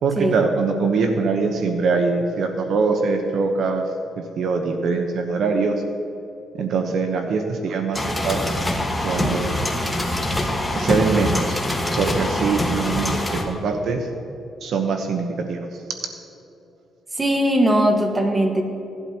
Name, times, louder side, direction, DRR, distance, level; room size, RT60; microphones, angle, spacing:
voice 1, 0.0-3.9 4.4-5.8 6.6-8.6 9.0-9.6 10.7-11.6 12.0-14.1 14.6-15.6, right 4 dB, 70° right, 4 dB, 1.0 m, -23 dB
sound 1, 7.9-13.4, left 1 dB, 10° left, 1.6 m, -24 dB
voice 2, 17.1-18.6, right 1 dB, 20° right, 3 dB, 1.6 m, -19 dB
17.5 x 11.5 x 3.0 m, 2.9 s
cardioid pair, 90°, 0 cm